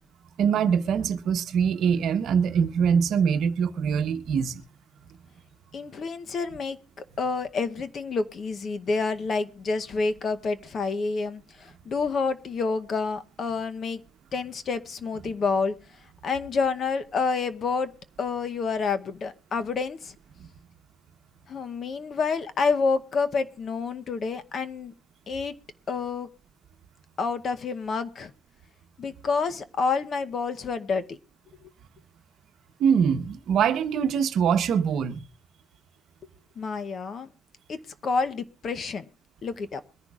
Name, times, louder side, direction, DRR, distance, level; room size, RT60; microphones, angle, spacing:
voice 1, 0.4-4.6 32.8-35.2, right 7 dB, 55° right, 0.9 m, -23 dB
voice 2, 5.7-6.8 7.2-14.0 14.3-15.7 16.2-17.9 18.2-20.1 21.5-24.9 25.3-25.5 25.9-26.3 27.2-28.3 29.0-31.2 36.6-37.3 37.7-37.8 38.0-39.0 39.4-39.8, left 4 dB, 40° left, 0.8 m, -28 dB
22.5 x 10.5 x 2.4 m
cardioid pair, 135°, 0 cm